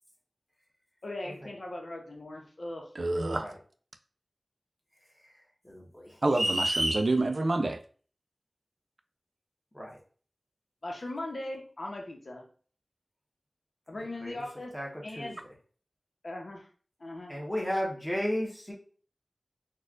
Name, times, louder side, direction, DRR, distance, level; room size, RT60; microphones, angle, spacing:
voice 1, 1.0-2.9 10.8-12.4 13.9-14.7 15.0-15.4 16.2-16.7 17.0-17.3, left 1 dB, 70° left, 0 dB, 0.9 m, -39 dB
voice 2, 3.0-3.5 6.2-7.8, right 2 dB, 65° right, 7 dB, 0.4 m, -27 dB
voice 3, 5.6-6.2 9.7-10.0 14.2-14.3 14.7-15.3 17.3-18.7, equal, 15° left, -2 dB, 1.1 m, -34 dB
sound 1, 6.3-7.0, right 1 dB, 30° right, 0.8 m, -28 dB
4.2 x 2.3 x 2.4 m, 0.41 s
wide cardioid pair, 60°, 0 cm